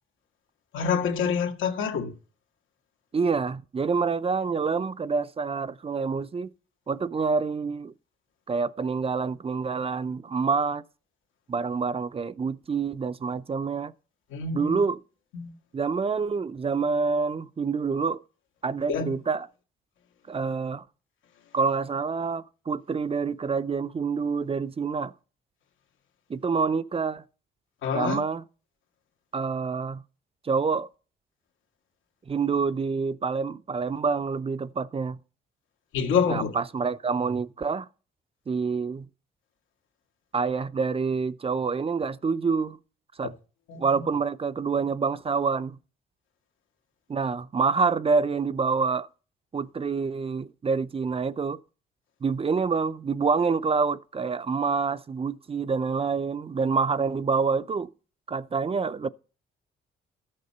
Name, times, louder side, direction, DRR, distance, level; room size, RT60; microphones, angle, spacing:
voice 1, 0.7-2.1 14.3-14.8 15.3-15.5 18.9-19.1 27.8-28.2 35.9-36.5 43.7-43.8, left 6 dB, 90° left, 1.9 m, -26 dB
voice 2, 3.1-6.5 6.9-7.9 8.5-10.8 11.5-13.9 14.5-15.0 15.7-18.2 18.6-19.5 20.3-20.8 21.5-25.1 26.3-27.2 27.9-28.4 29.3-30.0 30.4-30.9 32.3-35.2 36.3-37.9 38.5-39.1 40.3-42.8 43.2-43.3 43.8-45.8 47.1-49.1 49.5-51.6 52.2-57.9 58.3-59.1, right 5 dB, 30° right, 0.5 m, -27 dB
13.0 x 6.7 x 5.5 m
cardioid pair, 90°, 20 cm